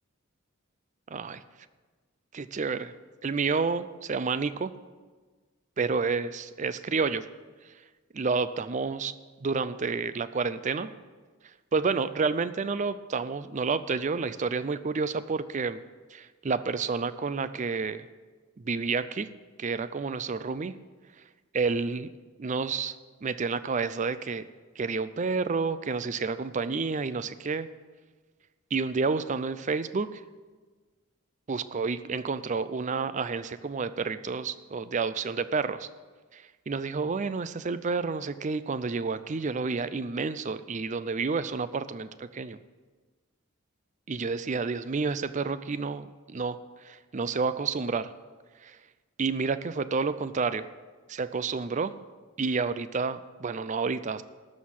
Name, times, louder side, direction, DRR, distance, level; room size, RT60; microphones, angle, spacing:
voice 1, 1.1-1.4 2.3-2.9 3.2-4.7 5.8-7.2 8.1-9.1 9.4-10.9 11.7-15.8 16.1-18.0 18.7-19.3 19.6-20.7 21.5-22.1 22.4-22.9 23.2-24.5 24.8-27.7 28.7-30.2 31.5-35.9 36.3-42.6 44.1-46.6 46.8-48.1 48.6-48.8 49.2-50.7 51.1-51.9 52.4-54.2, right 4 dB, 35° right, 14 dB, 0.4 m, -30 dB
13.0 x 6.4 x 7.4 m, 1.4 s
head